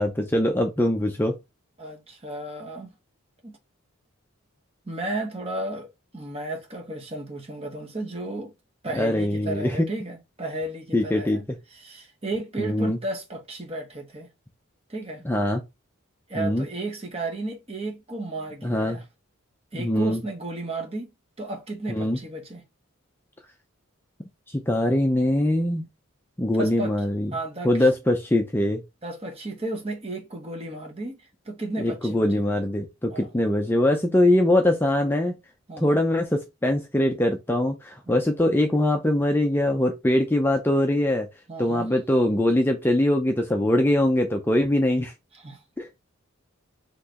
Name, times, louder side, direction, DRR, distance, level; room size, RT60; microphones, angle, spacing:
voice 1, 0.0-1.4 8.9-9.8 10.9-11.4 12.6-13.0 15.2-15.6 16.4-16.7 18.6-19.0 19.8-20.2 21.9-22.2 24.5-25.8 26.4-27.3 27.6-28.8 31.8-35.4 35.8-41.3 41.6-45.1 45.8-45.9, left 1 dB, 10° left, 0.4 m, -22 dB
voice 2, 1.8-2.9 3.4-3.6 4.8-8.5 8.8-11.4 11.7-14.3 14.9-15.2 16.3-19.0 19.7-21.1 21.4-22.6 26.5-26.9 27.3-27.8 29.0-32.3 33.1-33.3 35.7-36.0 41.5-41.9 45.3-45.6, right 2 dB, 30° right, 1.1 m, -33 dB
5.7 x 3.1 x 2.9 m
head